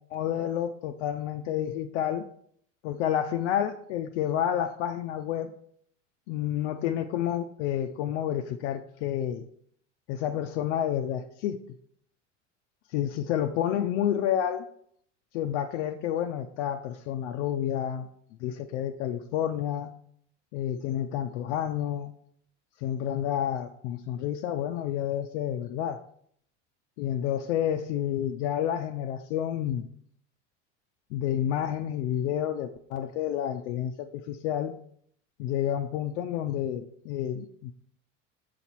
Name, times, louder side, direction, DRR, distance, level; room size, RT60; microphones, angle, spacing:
voice 1, 0.1-2.3 2.8-5.5 6.3-9.5 10.1-11.6 12.9-14.6 15.3-18.1 18.4-19.9 20.5-22.1 22.8-26.0 27.0-29.9 31.1-34.8 35.4-37.7, left 10 dB, 75° left, 6 dB, 0.5 m, -29 dB
6.4 x 4.2 x 4.4 m, 0.65 s
hypercardioid pair, 85°, 36 cm